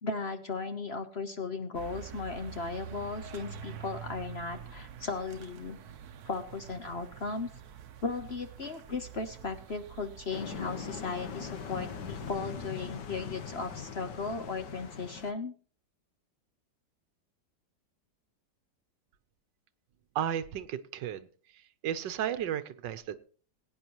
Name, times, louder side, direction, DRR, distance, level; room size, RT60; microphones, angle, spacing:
voice 1, 0.0-5.8 6.3-7.5 8.0-15.5, left 4 dB, 45° left, 7 dB, 1.0 m, -36 dB
sound 1, 1.7-12.4, right 8 dB, 65° right, 1.3 m, -47 dB
sound 2, 10.3-15.3, left 6 dB, 70° left, 1.7 m, -41 dB
voice 2, 20.1-21.3 21.5-23.2, right 10 dB, 80° right, 13 dB, 1.5 m, -34 dB
21.5 x 9.6 x 3.0 m, 0.41 s
omnidirectional pair, 1.9 m